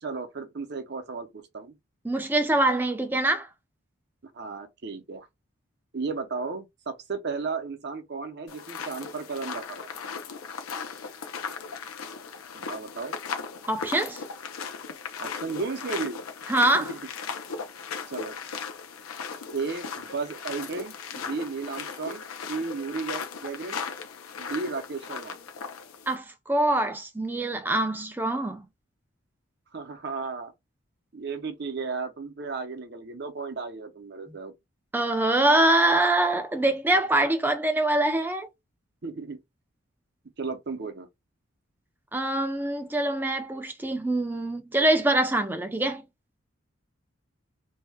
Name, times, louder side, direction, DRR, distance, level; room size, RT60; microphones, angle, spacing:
voice 1, 0.0-1.7 4.2-5.3 5.9-9.9 12.5-13.1 15.2-16.2 16.7-17.0 18.1-18.4 19.5-22.2 22.5-23.8 24.4-25.4 29.7-30.5 31.1-34.5 39.0-39.4 40.4-41.1, right 4 dB, 50° right, 0.6 m, -34 dB
voice 2, 2.0-3.5 13.7-14.2 16.5-16.9 26.1-28.7 34.9-38.5 42.1-46.0, right 1 dB, 10° right, 0.4 m, -24 dB
sound 1, 8.5-26.2, left 6 dB, 85° left, 0.6 m, -37 dB
2.7 x 2.2 x 3.3 m
head